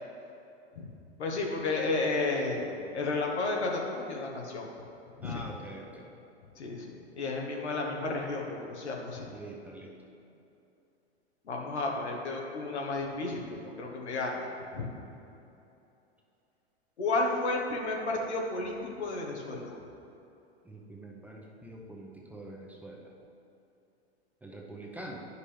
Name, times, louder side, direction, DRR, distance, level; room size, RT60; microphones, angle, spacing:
voice 1, 1.2-4.7 5.2-5.4 6.6-9.3 11.5-14.5 14.7-14.9 17.0-19.8, left 3 dB, 85° left, -1 dB, 1.4 m, -32 dB
voice 2, 5.2-6.1 9.3-9.9 20.6-23.1 24.4-25.3, right 1 dB, 5° right, -2 dB, 0.8 m, -45 dB
9.6 x 5.5 x 3.3 m, 2.8 s
hypercardioid pair, 110°, 33 cm